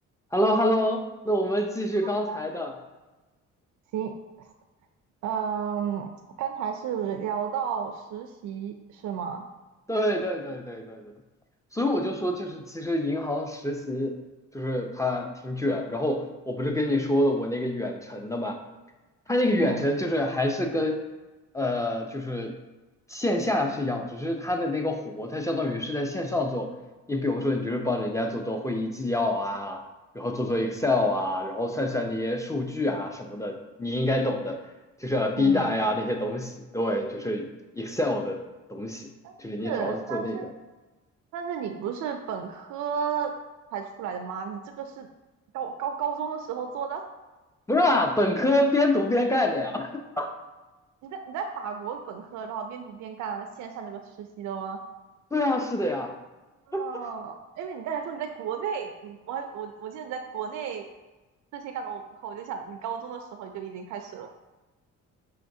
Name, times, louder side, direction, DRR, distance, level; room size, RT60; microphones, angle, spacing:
voice 1, 0.3-2.7 9.9-11.1 11.7-14.2 14.5-18.6 19.3-21.0 21.5-22.6 23.1-26.7 27.1-29.8 30.1-34.6 35.0-37.5 37.7-38.4 38.7-39.1 39.4-40.4 47.7-49.9 50.2-50.3 55.3-56.1 56.7-56.9, left 1 dB, 10° left, 3 dB, 0.5 m, -26 dB
voice 2, 2.0-2.4 3.9-4.5 5.2-6.1 6.4-9.4 19.6-19.8 35.4-35.7 39.2-40.5 41.3-43.3 43.7-45.1 45.5-47.0 51.0-54.8 56.7-60.9 61.5-64.3, right 7 dB, 70° right, 5 dB, 0.4 m, -33 dB
5.6 x 2.9 x 2.6 m, 1.1 s
cardioid pair, 90°, 30 cm